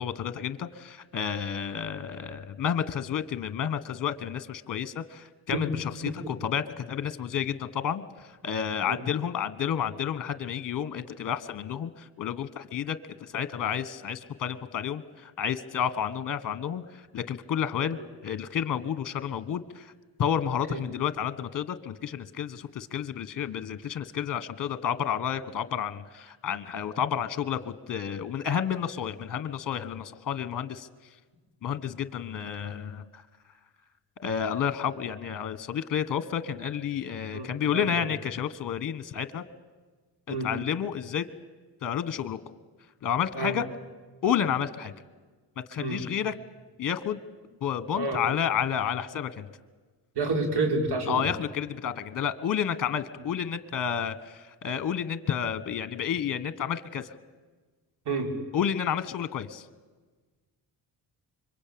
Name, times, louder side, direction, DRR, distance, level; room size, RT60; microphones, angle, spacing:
voice 1, 0.0-19.9 20.2-30.9 31.6-33.2 34.2-39.4 40.3-41.2 41.8-42.4 43.0-43.6 44.2-44.9 45.7-46.3 46.8-47.2 47.6-49.5 51.1-57.1 58.5-59.7, left 8 dB, 45° left, 14 dB, 1.4 m, -30 dB
voice 2, 37.3-37.8 40.3-40.5 43.4-43.5 45.8-46.0 47.9-48.2 50.2-51.3 58.1-58.3, right 3 dB, 65° right, 4 dB, 5.2 m, -29 dB
25.5 x 23.0 x 8.8 m, 1.3 s
cardioid pair, 85°, 43 cm